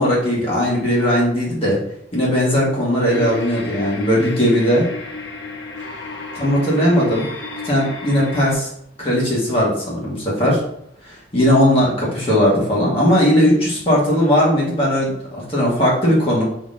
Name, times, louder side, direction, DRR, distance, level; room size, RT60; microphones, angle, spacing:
voice 1, 0.0-1.8 2.1-4.9 6.4-7.2 7.6-8.7 9.0-10.6 11.1-16.4, equal, 30° left, -6 dB, 1.4 m, -18 dB
sound 1, 3.1-8.5, left 3 dB, 85° left, 1.0 m, -33 dB
4.9 x 3.8 x 2.5 m, 0.73 s
head